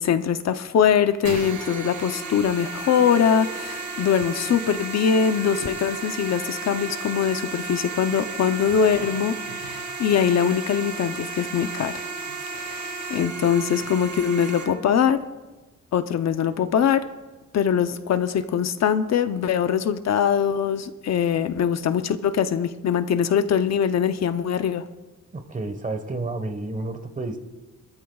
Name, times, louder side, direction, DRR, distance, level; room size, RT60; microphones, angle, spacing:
voice 1, 0.0-11.9 12.5-15.2 15.9-17.0 17.5-24.8, left 8 dB, 60° left, 10 dB, 0.7 m, -22 dB
sound 1, 1.2-14.6, right 4 dB, 75° right, 2.9 m, -33 dB
voice 2, 25.3-27.4, right 2 dB, 25° right, 7 dB, 1.3 m, -30 dB
23.0 x 13.5 x 2.4 m, 1.2 s
cardioid pair, 130°, 30 cm